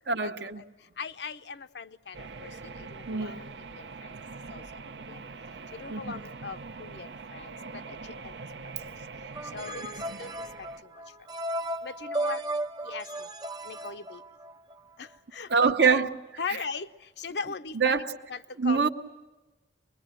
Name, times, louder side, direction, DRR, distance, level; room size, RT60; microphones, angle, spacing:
voice 1, 0.1-0.6 3.1-3.4 5.9-6.2 9.8-10.2 15.5-16.1 16.5-16.6 17.7-18.1 18.6-18.9, right 5 dB, 70° right, 1.1 m, -25 dB
voice 2, 1.0-3.4 3.7-4.1 4.5-4.6 5.1-5.2 5.7-8.0 8.2-8.3 9.5-9.9 10.2-10.3 10.6-10.7 11.8-12.4 12.8-13.3 13.6-14.2 15.0-16.0 16.4-16.9 17.2-18.0 18.3-18.9, left 5 dB, 75° left, 0.7 m, -38 dB
sound 1, 2.1-10.8, right 4 dB, 90° right, 0.8 m, -43 dB
sound 2, 9.3-14.7, right 1 dB, 25° right, 0.8 m, -35 dB
25.0 x 21.5 x 9.0 m
head